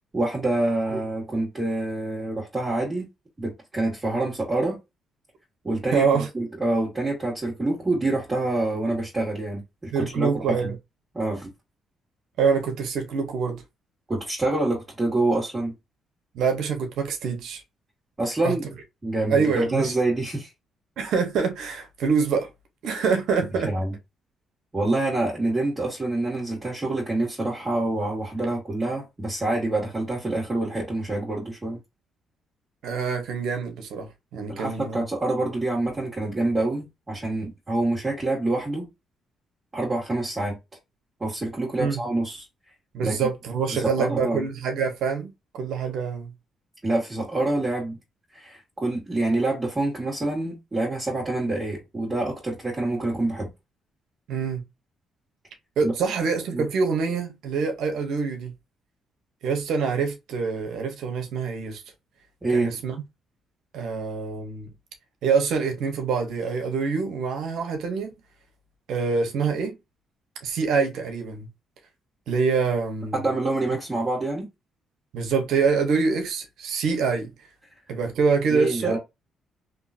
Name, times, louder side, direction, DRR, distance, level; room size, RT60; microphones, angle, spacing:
voice 1, 0.1-3.0 3.4-4.8 5.6-10.7 11.1-11.5 14.1-15.7 18.2-18.7 19.0-20.5 23.6-23.9 24.7-31.8 34.5-38.9 39.7-40.6 41.2-42.4 43.0-43.2 43.7-44.4 46.8-48.0 48.3-53.5 55.8-55.9 56.5-56.6 62.4-62.7 73.1-74.5 78.5-79.0, right 2 dB, 20° right, 2.0 m, -26 dB
voice 2, 5.9-6.3 9.9-10.7 12.4-13.6 16.3-17.6 18.4-18.6 19.3-19.9 21.0-22.5 22.8-23.7 32.8-35.0 41.8-42.0 42.9-46.3 54.3-54.6 55.8-58.5 59.4-61.8 62.5-62.9 63.7-64.7 65.2-68.1 68.9-69.7 70.4-71.5 72.3-73.2 75.1-77.3 77.9-79.0, right 5 dB, 80° right, 1.1 m, -25 dB
3.7 x 3.0 x 2.7 m
cardioid pair, 90°, 0 cm